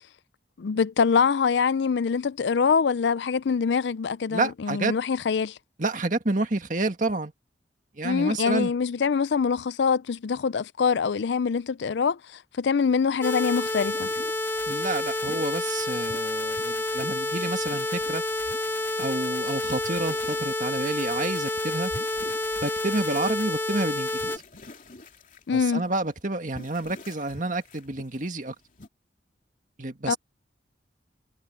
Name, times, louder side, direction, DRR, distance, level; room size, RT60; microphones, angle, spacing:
voice 1, 0.6-5.6 8.0-12.2 12.6-14.1 25.5-25.8 30.1-30.2, left 6 dB, 80° left, 0.4 m, -24 dB
voice 2, 4.3-4.9 5.8-7.3 8.0-8.7 14.7-18.2 19.0-21.9 22.6-24.4 25.5-28.5 29.8-30.2, right 2 dB, 45° right, 2.0 m, -29 dB
sound 1, 13.2-24.4, left 2 dB, 15° left, 2.0 m, -29 dB
sound 2, 13.8-28.9, left 2 dB, 45° left, 3.0 m, -48 dB
head